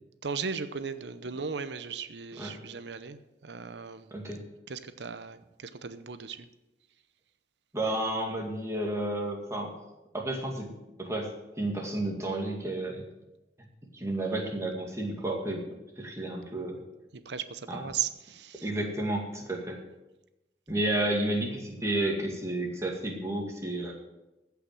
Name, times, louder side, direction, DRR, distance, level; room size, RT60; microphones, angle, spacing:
voice 1, 0.2-4.1 4.7-6.5 17.1-18.7, right 6 dB, 85° right, 12 dB, 0.8 m, -37 dB
voice 2, 4.1-4.4 7.7-9.7 10.1-10.7 11.0-13.1 13.9-15.6 16.0-16.8 17.7-17.9 18.6-19.8 20.7-23.9, right 1 dB, 15° right, 0 dB, 2.2 m, -31 dB
14.5 x 5.9 x 7.6 m, 0.97 s
head